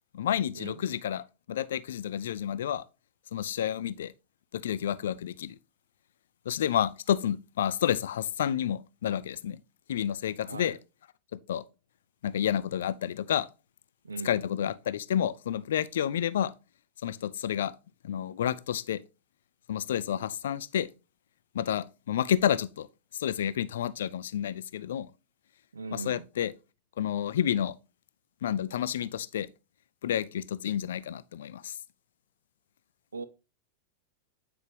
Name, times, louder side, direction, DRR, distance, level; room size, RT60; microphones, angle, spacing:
voice 1, 0.1-2.8 3.3-4.1 4.5-5.6 6.5-9.6 9.9-10.8 11.5-11.6 12.2-13.5 14.2-16.5 17.0-17.7 18.0-19.0 19.7-20.9 21.5-22.9 23.2-25.1 25.9-26.5 27.0-27.8 28.4-29.5 30.0-31.7, left 10 dB, 60° left, 0.4 m, -30 dB
voice 2, 10.4-10.8 14.0-14.4 25.7-26.3 33.1-33.3, right 4 dB, 75° right, 0.4 m, -39 dB
8.7 x 4.4 x 3.3 m
figure-of-eight pair, 90°, 0 cm